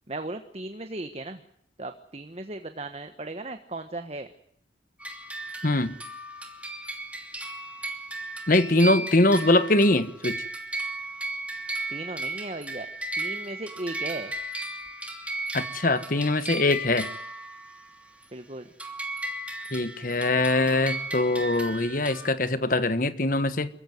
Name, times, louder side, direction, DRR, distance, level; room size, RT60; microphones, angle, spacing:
voice 1, 0.1-1.4 1.8-4.3 11.9-12.9 13.2-14.3 18.3-18.7, right 2 dB, 35° right, 1.3 m, -36 dB
sound 1, 5.0-18.2 18.8-22.3, right 2 dB, 5° right, 2.8 m, -35 dB
voice 2, 5.6-5.9 8.5-10.4 15.5-17.1 19.7-23.7, left 2 dB, 45° left, 1.5 m, -23 dB
27.0 x 15.5 x 9.5 m
head